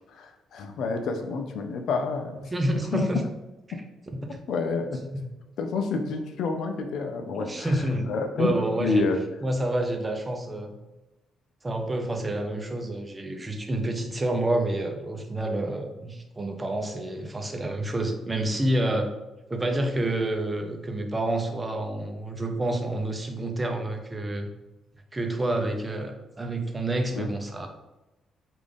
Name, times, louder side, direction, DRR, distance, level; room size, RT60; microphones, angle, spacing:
voice 1, 0.1-2.4 2.9-3.1 3.7-3.8 4.5-5.0 5.6-8.5 8.8-9.2 27.1-27.3, left 4 dB, 70° left, 6 dB, 0.4 m, -28 dB
voice 2, 2.4-3.2 3.7-3.8 4.1-4.4 7.3-8.1 8.4-9.1 9.4-10.8 11.6-19.1 19.5-24.5 25.1-27.7, right 1 dB, 20° right, 4 dB, 0.5 m, -28 dB
3.6 x 2.5 x 3.3 m, 1.0 s
cardioid pair, 90°, 0 cm